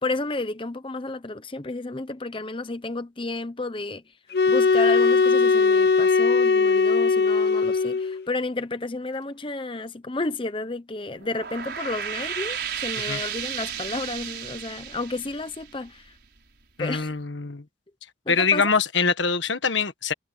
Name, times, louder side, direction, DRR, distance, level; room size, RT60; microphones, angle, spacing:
voice 1, 0.0-4.1 4.5-16.2 16.8-17.1 18.3-18.7, left 2 dB, 30° left, 0.8 m, -31 dB
sound 1, 4.3-8.2, left 4 dB, 60° left, 0.9 m, -19 dB
sound 2, 11.1-16.4, right 8 dB, 60° right, 6.5 m, -33 dB
voice 2, 16.8-17.6 18.3-20.1, left 5 dB, 85° left, 1.5 m, -24 dB
head